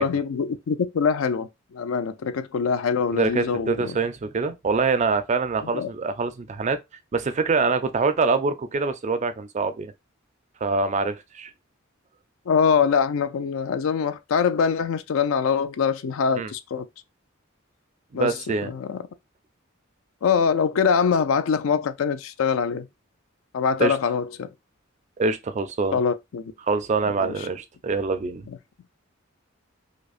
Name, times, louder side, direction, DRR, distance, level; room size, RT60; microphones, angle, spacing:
voice 1, 0.0-4.0 5.7-5.9 12.5-16.9 18.1-18.3 18.6-19.0 20.2-22.9 23.5-24.5 25.9-26.4 27.1-27.3, left 6 dB, 80° left, 0.4 m, -23 dB
voice 2, 3.1-6.8 7.1-9.9 10.6-11.5 16.3-16.5 18.1-18.7 23.8-24.0 25.2-26.0 26.6-28.5, right 4 dB, 35° right, 0.4 m, -25 dB
5.0 x 2.1 x 2.4 m
head